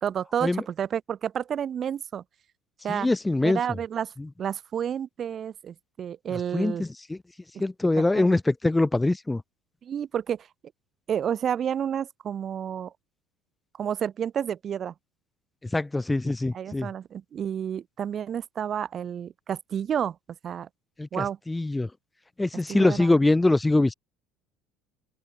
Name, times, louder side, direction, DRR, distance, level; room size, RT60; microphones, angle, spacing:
voice 1, 0.0-2.2 2.8-3.1 3.4-4.1 4.4-6.8 7.5-7.6 8.1-8.4 9.8-10.5 11.1-12.9 13.8-14.9 16.5-20.2 20.4-20.7 21.1-21.4 22.7-23.2, right 8 dB, 40° right, 1.1 m, -30 dB
voice 2, 2.9-3.6 6.5-7.2 7.6-9.4 15.7-16.9 21.0-21.9 22.4-23.9, left 2 dB, 10° left, 0.4 m, -23 dB
open air
supercardioid pair, 90°, 0 cm